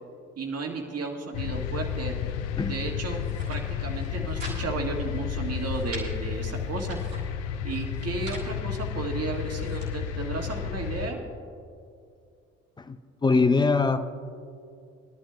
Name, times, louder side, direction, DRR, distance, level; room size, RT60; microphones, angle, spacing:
voice 1, 0.4-2.2 2.7-3.2 3.5-7.0 7.6-11.2, right 4 dB, 40° right, 2 dB, 1.7 m, -33 dB
sound 1, 1.3-11.1, left 8 dB, 70° left, 0.6 m, -32 dB
sound 2, 3.2-3.6 4.0-4.6 4.9-5.0 5.3-6.1 6.6-7.2 7.9-8.5 9.1-9.9, right 1 dB, 85° right, 1.6 m, -43 dB
voice 2, 12.8-14.1, left 4 dB, 10° left, 11 dB, 0.4 m, -23 dB
20.5 x 11.5 x 2.3 m, 2.4 s
figure-of-eight pair, 45°, 38 cm